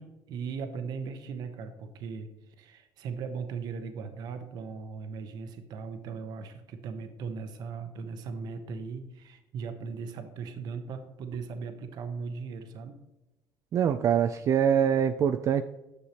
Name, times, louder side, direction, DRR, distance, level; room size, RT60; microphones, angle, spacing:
voice 1, 0.0-13.0, right 5 dB, 70° right, 8 dB, 1.0 m, -38 dB
voice 2, 13.7-15.6, right 8 dB, 45° right, 9 dB, 0.4 m, -24 dB
9.7 x 6.6 x 2.9 m, 1.0 s
cardioid pair, 115°, 7 cm